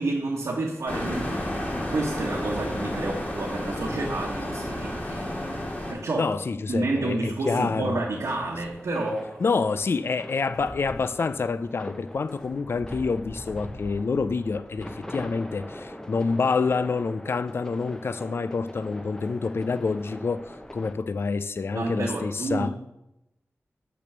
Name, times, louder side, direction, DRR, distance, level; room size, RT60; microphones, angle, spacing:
voice 1, 0.0-1.4 1.9-5.3 5.9-6.3 6.7-9.4 21.7-22.7, right 2 dB, 90° right, 1.2 m, -29 dB
sound 1, 0.9-5.9, left 1 dB, 30° left, 2.2 m, -31 dB
voice 2, 6.2-8.0 9.4-22.7, left 4 dB, 55° left, 0.3 m, -27 dB
sound 2, 7.7-20.9, left 1 dB, 15° left, 0.7 m, -42 dB
6.1 x 6.0 x 6.8 m
wide cardioid pair, 95°, 5 cm